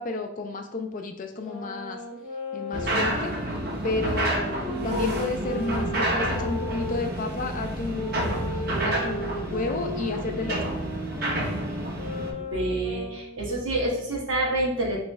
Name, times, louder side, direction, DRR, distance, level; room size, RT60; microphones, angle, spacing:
voice 1, 0.0-2.0 2.5-3.3 3.8-8.3 8.8-10.6, left 3 dB, 40° left, 5 dB, 0.4 m, -31 dB
sound 1, 1.4-7.2 7.9-13.6, left 1 dB, 10° right, 1.4 m, -36 dB
sound 2, 2.7-12.3, right 1 dB, 50° right, 0.7 m, -29 dB
voice 2, 12.5-15.0, right 1 dB, 75° right, -3 dB, 1.1 m, -27 dB
3.1 x 3.0 x 3.5 m, 0.74 s
head